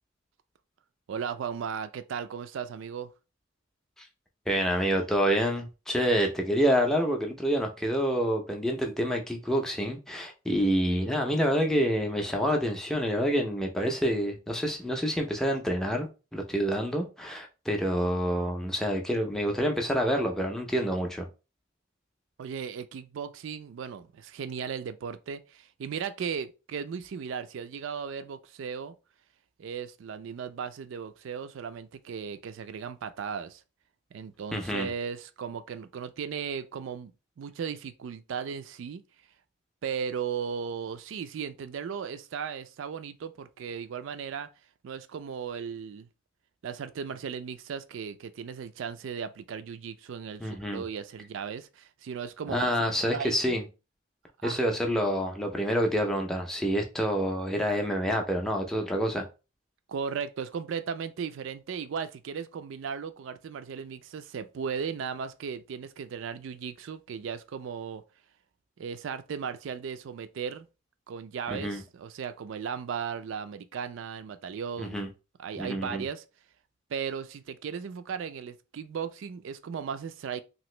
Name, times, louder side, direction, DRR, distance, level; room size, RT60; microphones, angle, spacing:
voice 1, 1.1-3.1 22.4-28.9 29.6-33.6 34.1-37.1 37.4-39.0 39.8-44.5 44.8-46.1 46.6-53.6 54.4-54.6 59.9-68.0 68.8-70.7 71.1-75.1 75.4-76.2 76.9-80.4, right 6 dB, 70° right, 0.3 m, -36 dB
voice 2, 4.5-21.3 34.5-34.9 50.4-50.8 52.5-53.6 54.4-59.3 71.5-71.8 74.8-75.1 75.6-76.0, equal, ahead, 0.4 m, -27 dB
2.9 x 2.5 x 3.1 m
head